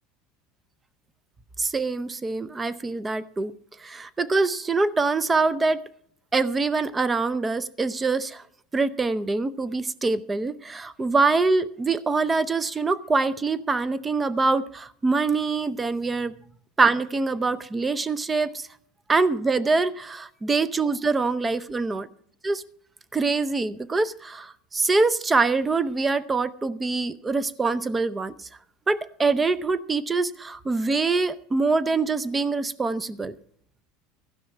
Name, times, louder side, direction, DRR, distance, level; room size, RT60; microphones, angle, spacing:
voice 1, 1.6-3.5 3.8-5.8 6.3-8.4 8.7-16.3 16.8-18.7 19.1-22.1 22.4-22.6 23.1-28.5 28.9-33.3, right 3 dB, 15° right, 0.6 m, -24 dB
16.0 x 5.4 x 8.9 m
supercardioid pair, 130°, 0 cm